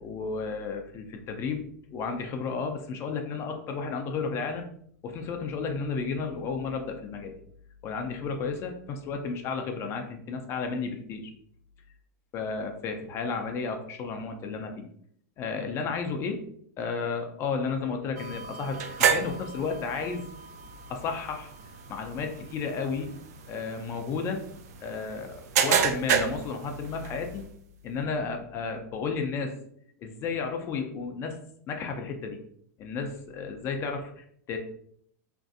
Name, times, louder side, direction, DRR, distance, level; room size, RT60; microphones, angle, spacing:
voice 1, 0.0-1.6 1.9-4.7 5.0-7.3 7.8-11.3 12.3-14.9 15.4-16.4 16.8-20.3 20.9-21.5 21.9-23.1 23.5-24.4 24.8-27.4 27.8-29.5 30.0-31.4 31.7-32.4 32.8-34.6, left 5 dB, 30° left, 4 dB, 0.4 m, -32 dB
sound 1, 18.2-27.5, right 7 dB, 65° right, 0.4 m, -31 dB
3.1 x 2.6 x 2.5 m, 0.64 s
supercardioid pair, 140°, 9 cm